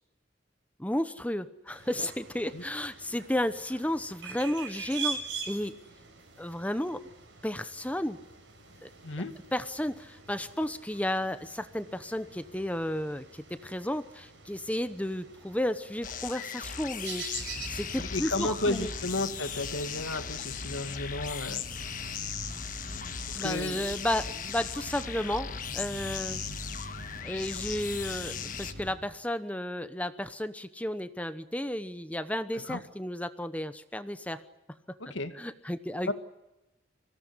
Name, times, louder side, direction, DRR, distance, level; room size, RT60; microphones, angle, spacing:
voice 1, 0.8-5.8 6.4-7.1 7.4-8.2 8.8-8.9 9.2-9.3 9.5-18.9 23.3-26.4 27.2-34.4 35.3-36.1, left 1 dB, 5° left, 11 dB, 0.9 m, -33 dB
sound 1, 1.7-17.7, right 5 dB, 80° right, 6.1 m, -44 dB
sound 2, 16.0-28.7, left 8 dB, 45° left, 1.5 m, -38 dB
sound 3, 17.3-28.9, equal, 60° right, 4.3 m, -43 dB
voice 2, 18.0-21.6 23.3-23.8 32.5-32.8 35.0-35.3 36.1-36.2, left 2 dB, 85° left, 8 dB, 2.1 m, -33 dB
25.0 x 17.5 x 9.8 m, 0.95 s
head